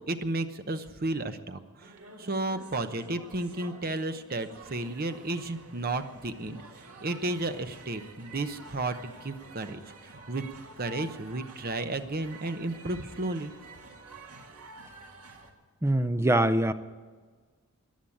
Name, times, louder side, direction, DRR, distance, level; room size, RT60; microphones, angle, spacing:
voice 1, 0.0-1.9 2.2-6.6 7.0-9.8 10.3-10.5 10.8-13.5, right 2 dB, 40° right, 9 dB, 0.9 m, -33 dB
sound 1, 1.8-15.5, right 3 dB, 80° right, 2.0 m, -49 dB
voice 2, 15.8-16.7, right 1 dB, 10° right, 11 dB, 0.5 m, -23 dB
15.0 x 10.5 x 8.6 m, 1.5 s
head